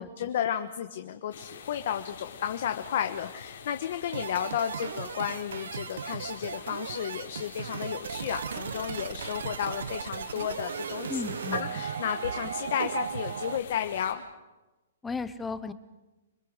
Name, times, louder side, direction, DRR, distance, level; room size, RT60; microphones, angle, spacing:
voice 1, 0.0-11.2 11.5-14.2, left 9 dB, 45° left, 7 dB, 1.2 m, -33 dB
sound 1, 1.3-14.1, left 7 dB, 65° left, 4.1 m, -47 dB
sound 2, 4.1-13.6, right 7 dB, 70° right, 0.8 m, -36 dB
voice 2, 11.1-11.7 15.0-15.7, left 4 dB, 5° left, 12 dB, 0.8 m, -35 dB
25.5 x 22.5 x 6.6 m, 1.1 s
hypercardioid pair, 175°, 0 cm